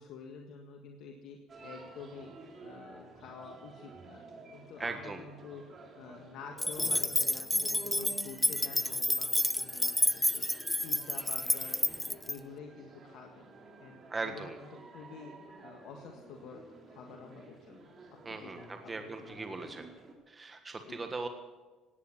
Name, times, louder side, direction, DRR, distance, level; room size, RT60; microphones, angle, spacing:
voice 1, 0.0-2.3 2.6-4.2 4.5-5.7 6.0-10.5 10.8-11.8 12.1-13.5 13.8-14.5 14.9-15.3 15.6-17.9 18.3-19.8 20.9-21.1, left 6 dB, 70° left, 2 dB, 1.7 m, -49 dB
sound 1, 1.5-20.1, right 3 dB, 40° right, 4.1 m, -51 dB
voice 2, 4.8-5.2 14.1-14.6 18.2-19.9 20.3-21.3, right 3 dB, 25° right, 6 dB, 1.4 m, -39 dB
sound 2, 6.6-12.3, left 1 dB, 5° left, 0.4 m, -30 dB
18.0 x 9.7 x 7.4 m, 1.3 s
supercardioid pair, 85°, 0 cm